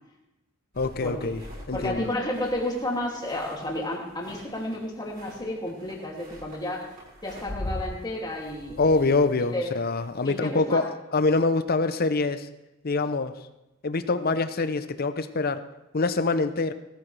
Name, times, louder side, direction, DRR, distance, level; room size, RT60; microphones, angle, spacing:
sound 1, 0.7-10.5, left 1 dB, 45° right, 5.5 m, -43 dB
voice 1, 0.8-1.4 1.7-2.1 8.8-12.5 12.8-13.4 13.8-15.7 15.9-16.7, left 3 dB, 45° left, 11 dB, 0.7 m, -25 dB
voice 2, 1.7-6.9 7.2-9.1 9.5-9.7 10.2-10.8, left 1 dB, 20° left, -2 dB, 2.6 m, -31 dB
18.5 x 13.5 x 3.4 m, 0.98 s
head